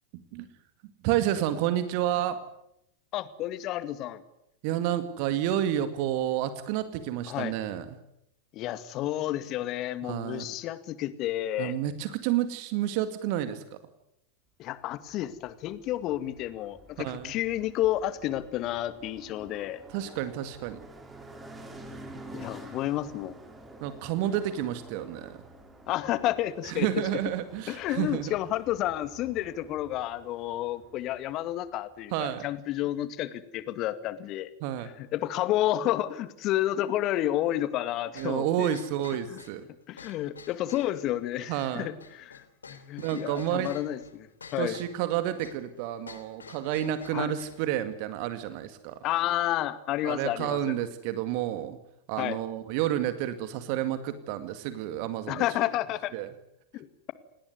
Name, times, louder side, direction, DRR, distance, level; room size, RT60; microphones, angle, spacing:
voice 1, 1.0-2.4 4.6-7.9 10.0-10.5 11.6-13.8 17.0-17.3 19.9-20.8 23.8-25.4 26.6-28.3 32.1-32.5 34.6-34.9 38.2-39.7 41.5-41.9 43.0-43.7 44.6-49.0 50.0-51.8 52.1-55.4 56.1-56.3, right 11 dB, 45° right, 10 dB, 2.0 m, -30 dB
voice 2, 3.1-4.2 7.3-7.6 8.5-11.8 14.6-19.8 22.3-23.4 25.9-26.9 27.7-34.5 35.0-38.7 39.3-39.4 39.9-44.3 44.5-44.8 47.1-47.3 49.0-50.7 52.2-52.4 55.3-56.1 56.7-57.1, left 13 dB, 35° left, 13 dB, 2.1 m, -31 dB
sound 1, 15.1-32.5, right 2 dB, 15° right, 5.7 m, -50 dB
sound 2, 38.2-47.6, left 5 dB, 75° left, 3.3 m, -50 dB
28.5 x 19.0 x 9.6 m, 0.82 s
figure-of-eight pair, 90°, 0 cm